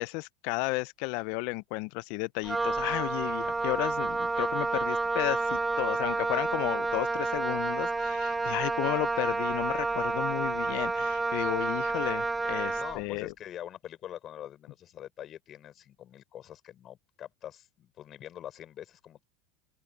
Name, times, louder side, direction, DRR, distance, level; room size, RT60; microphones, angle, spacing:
voice 1, 0.0-13.3, left 26 dB, 65° left, 0.7 m, -33 dB
Wind instrument woodwind instrument, 2.4-13.0, right 3 dB, 10° right, 1.0 m, -30 dB
voice 2, 12.7-19.2, left 11 dB, 40° left, 5.9 m, -44 dB
open air
supercardioid pair, 110°, 0 cm